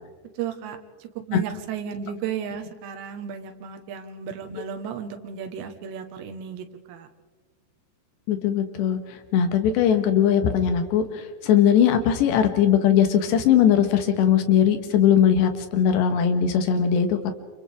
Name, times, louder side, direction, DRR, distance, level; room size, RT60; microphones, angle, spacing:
voice 1, 0.4-7.1, right 8 dB, 80° right, 6 dB, 3.6 m, -34 dB
voice 2, 8.3-17.3, left 9 dB, 80° left, 7 dB, 3.6 m, -20 dB
29.0 x 28.0 x 3.6 m, 1.4 s
omnidirectional pair, 5.0 m